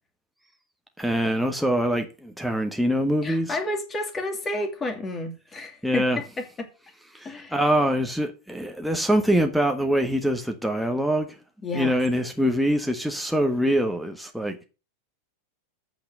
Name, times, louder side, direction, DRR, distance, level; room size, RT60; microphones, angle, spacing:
voice 1, 1.0-3.6 5.8-6.2 7.1-11.3 11.7-14.6, equal, ahead, 1.3 m, -24 dB
voice 2, 3.2-6.0 6.4-6.5 7.2-7.6 11.6-12.0, left 1 dB, 20° left, 2.6 m, -30 dB
8.4 x 6.1 x 7.9 m
figure-of-eight pair, 90°, 0 cm